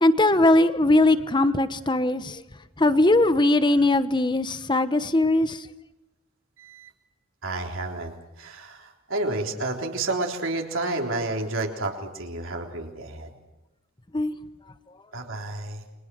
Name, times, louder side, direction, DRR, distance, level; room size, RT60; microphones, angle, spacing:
voice 1, 0.0-2.4 2.8-5.7 14.1-14.3, left 2 dB, 20° left, 12 dB, 1.1 m, -20 dB
voice 2, 6.6-6.9 7.4-13.3 15.1-15.8, right 2 dB, 65° right, 1 dB, 3.9 m, -30 dB
29.5 x 24.0 x 6.3 m, 1.0 s
head